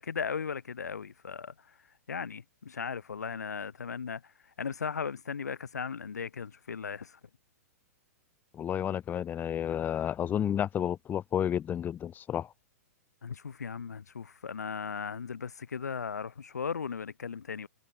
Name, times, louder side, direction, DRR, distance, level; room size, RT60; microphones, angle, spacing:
voice 1, 0.0-1.5 2.1-4.3 4.6-7.2 13.2-17.7, left 6 dB, 90° left, 2.0 m, -37 dB
voice 2, 8.5-12.5, left 9 dB, 20° left, 1.0 m, -31 dB
hypercardioid pair, 125°, 9 cm